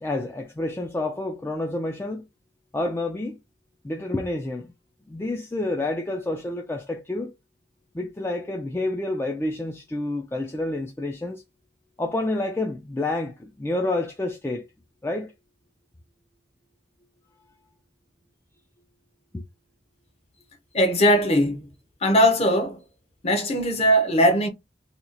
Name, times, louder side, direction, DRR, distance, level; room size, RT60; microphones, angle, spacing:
voice 1, 0.0-2.3 2.7-3.4 3.8-4.7 5.1-7.3 7.9-11.4 12.0-14.7 15.0-15.3 19.3-19.4, left 2 dB, 15° left, 0.3 m, -29 dB
voice 2, 20.7-21.7 22.0-22.8 23.2-24.5, equal, 35° left, 0.7 m, -20 dB
2.9 x 2.3 x 3.8 m
head